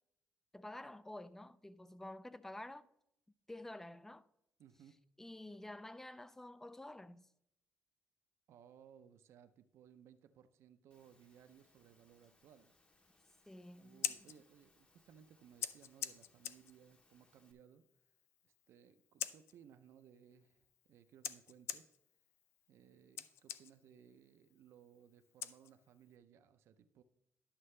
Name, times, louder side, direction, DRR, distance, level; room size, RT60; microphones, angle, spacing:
voice 1, 0.5-2.9 3.5-4.3 5.2-7.3 13.5-14.0, left 1 dB, 10° left, 0.3 m, -50 dB
voice 2, 4.6-5.0 8.5-12.8 13.8-17.8 18.4-21.9 22.7-27.0, right 8 dB, 70° right, 0.5 m, -62 dB
Engine / Mechanisms, 10.9-17.5, left 2 dB, 25° left, 1.0 m, -73 dB
Scissors, 13.8-26.2, left 10 dB, 70° left, 0.4 m, -48 dB
11.0 x 6.5 x 3.2 m
cardioid pair, 130°, 5 cm